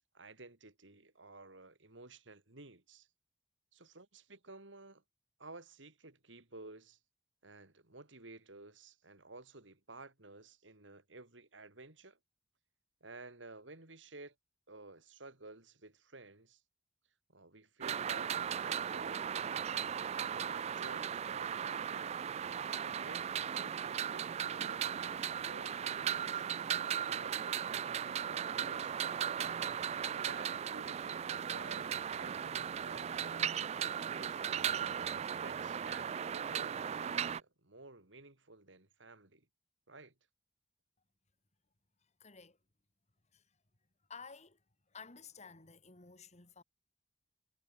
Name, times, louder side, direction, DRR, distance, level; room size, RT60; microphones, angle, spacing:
voice 1, 0.1-3.1 3.7-5.0 5.4-7.0 7.4-12.2 13.0-14.3 14.7-16.6 17.3-19.3 19.8-22.2 22.7-26.5 27.0-29.1 30.1-34.7 35.4-39.5 39.9-40.1, right 2 dB, 80° right, 3.5 m, -54 dB
sound 1, 17.8-37.4, right 8 dB, 35° right, 0.3 m, -37 dB
voice 2, 42.2-42.6 43.3-43.4 44.1-44.6 44.9-46.6, left 5 dB, 40° left, 2.8 m, -53 dB
head